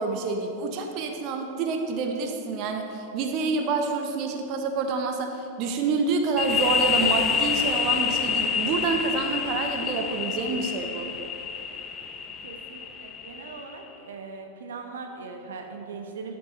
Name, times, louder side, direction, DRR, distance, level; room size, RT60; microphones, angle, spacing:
voice 1, 0.0-11.1, right 4 dB, 40° right, 4 dB, 0.8 m, -28 dB
sound 1, 6.4-13.8, left 6 dB, 25° left, 0.7 m, -28 dB
voice 2, 12.4-16.4, right 4 dB, 65° right, 4 dB, 0.8 m, -40 dB
12.5 x 8.0 x 3.2 m, 2.7 s
figure-of-eight pair, 90°, 0 cm